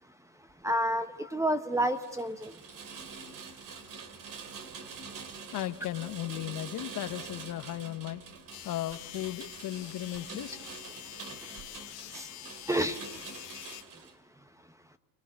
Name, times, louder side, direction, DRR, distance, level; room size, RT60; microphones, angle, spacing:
voice 1, 0.4-2.6 11.2-13.4, right 1 dB, 5° right, 1.0 m, -32 dB
Rain, 1.8-14.1, right 5 dB, 45° right, 2.5 m, -46 dB
voice 2, 5.5-8.2 8.6-10.6, left 13 dB, 45° left, 1.1 m, -36 dB
sound 1, 8.5-13.8, left 18 dB, 65° left, 1.5 m, -46 dB
25.5 x 19.5 x 7.9 m
supercardioid pair, 100°, 43 cm